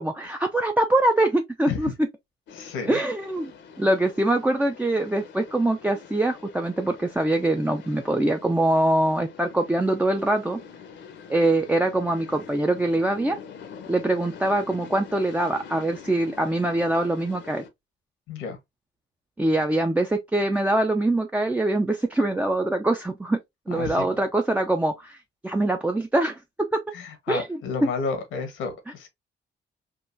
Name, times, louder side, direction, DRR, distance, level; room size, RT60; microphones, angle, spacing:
voice 1, 0.0-1.9 2.9-3.5 3.8-10.6 11.3-13.4 13.9-17.6 19.4-23.4 23.7-25.2 25.4-26.8 27.3-27.5, right 1 dB, 10° right, 0.4 m, -23 dB
voice 2, 2.5-3.0 18.3-18.6 23.7-24.1 26.9-29.1, left 5 dB, 90° left, 1.1 m, -31 dB
sound 1, 2.5-17.7, left 6 dB, 65° left, 0.7 m, -45 dB
3.6 x 2.4 x 2.5 m
cardioid pair, 90°, 20 cm